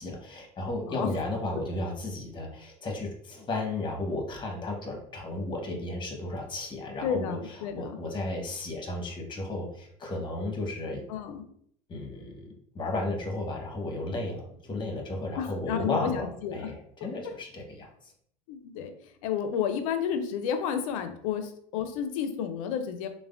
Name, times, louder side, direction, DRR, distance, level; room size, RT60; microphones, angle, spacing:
voice 1, 0.0-11.0 11.9-18.1, left 2 dB, 30° left, 1 dB, 1.0 m, -34 dB
voice 2, 7.0-8.0 11.1-11.4 15.4-16.7 18.5-18.9 19.2-23.1, left 8 dB, 85° left, 8 dB, 0.4 m, -31 dB
3.3 x 2.1 x 2.4 m, 0.65 s
supercardioid pair, 90°, 17 cm